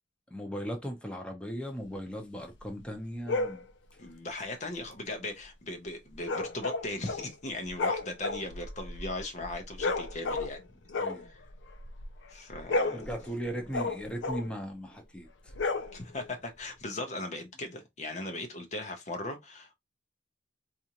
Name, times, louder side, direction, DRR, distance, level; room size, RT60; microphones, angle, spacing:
voice 1, 0.3-3.6 10.9-11.2 12.9-15.5, equal, 5° left, 0.8 m, -38 dB
sound 1, 3.3-3.6 6.2-7.3 7.6-10.6 10.9-12.1 12.5-14.6 15.5-16.3, left 3 dB, 85° left, 0.6 m, -33 dB
voice 2, 4.0-10.6 11.2-11.4 12.3-13.2 15.9-19.7, left 2 dB, 40° left, 0.7 m, -38 dB
4.2 x 2.5 x 2.9 m
head